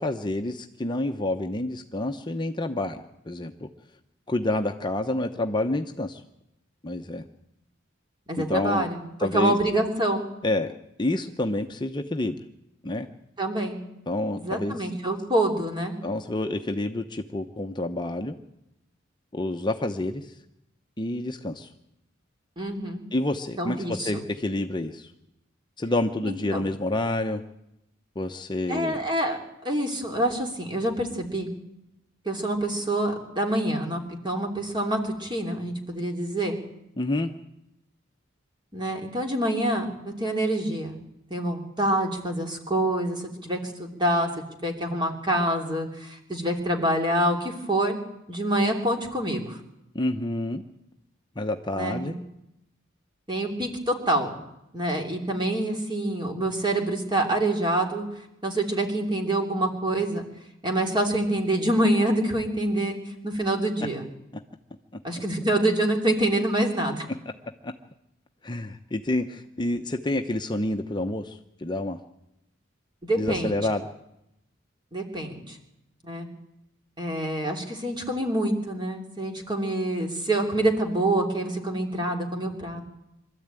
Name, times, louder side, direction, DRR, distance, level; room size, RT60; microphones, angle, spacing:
voice 1, 0.0-3.5 4.3-6.2 6.8-7.2 8.4-8.9 9.2-9.6 10.4-10.7 11.0-12.4 12.8-13.1 14.1-14.9 16.0-18.4 19.3-20.3 21.0-21.7 23.1-25.1 25.8-27.4 28.2-29.0 37.0-37.3 49.9-50.6 51.4-52.1 67.6-67.7 68.4-72.0 73.2-73.9, left 1 dB, 25° left, 5 dB, 0.8 m, -28 dB
voice 2, 8.3-10.3 13.4-13.8 14.4-16.0 22.6-23.0 23.6-24.2 26.2-26.6 28.7-31.5 32.2-36.6 38.7-41.0 41.3-44.3 44.6-48.0 48.3-49.6 51.8-52.2 53.3-54.4 54.7-58.0 58.4-60.2 60.6-63.0 63.2-64.1 65.0-67.0 73.0-73.6 74.9-75.6 76.0-76.3 77.0-82.8, right 1 dB, 25° right, 2 dB, 3.1 m, -26 dB
24.0 x 13.5 x 9.0 m, 0.86 s
head